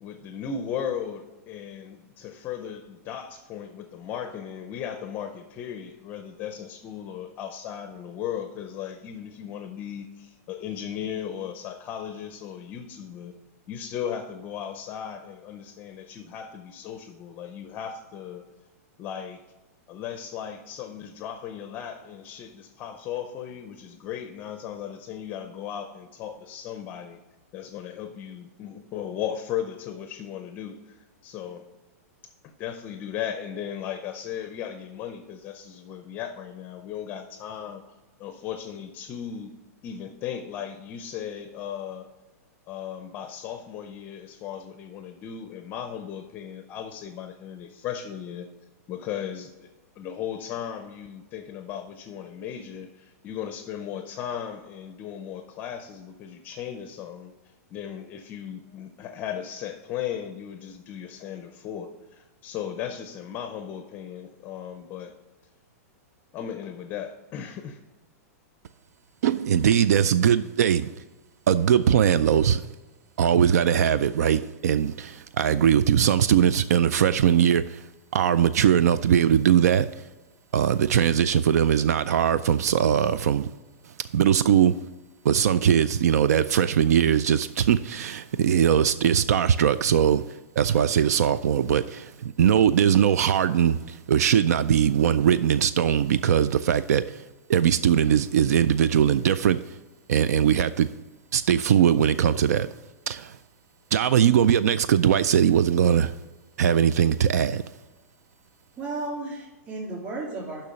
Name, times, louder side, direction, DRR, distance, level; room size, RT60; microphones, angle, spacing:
voice 1, 0.0-13.3 13.7-18.4 19.0-19.4 19.9-27.2 27.5-31.0 31.2-31.7 32.4-37.8 38.2-39.5 39.8-42.1 42.7-48.5 48.9-49.7 50.0-57.3 57.7-65.1 66.3-67.8, left 9 dB, 25° left, 0.5 m, -36 dB
voice 2, 69.2-70.9 71.5-72.6 73.2-77.8 78.1-79.9 80.5-83.5 84.1-84.7 85.2-90.2 90.6-97.2 97.5-99.6 100.1-100.9 101.3-102.7 103.1-103.4 103.9-106.1 106.6-107.6, right 9 dB, 80° right, 0.4 m, -21 dB
voice 3, 108.8-110.7, right 2 dB, 25° right, 2.9 m, -34 dB
6.8 x 5.7 x 6.3 m
supercardioid pair, 165°, 8 cm